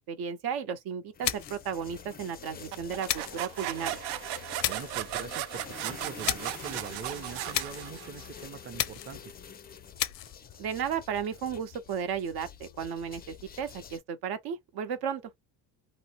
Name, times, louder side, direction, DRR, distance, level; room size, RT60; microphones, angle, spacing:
voice 1, 0.1-4.0 10.6-15.2, right 7 dB, 65° right, 0.9 m, -34 dB
sound 1, 1.1-14.0, left 7 dB, 25° left, 0.4 m, -47 dB
sound 2, 1.2-1.7 3.1-3.4 4.6-5.0 6.2-6.6 7.5-7.9 8.8-9.2 10.0-10.4, left 14 dB, 85° left, 0.6 m, -32 dB
sound 3, 2.7-8.4, right 15 dB, 85° right, 0.5 m, -36 dB
voice 2, 4.7-9.3, right 6 dB, 30° right, 0.6 m, -42 dB
2.9 x 2.0 x 2.8 m
supercardioid pair, 95°, 41 cm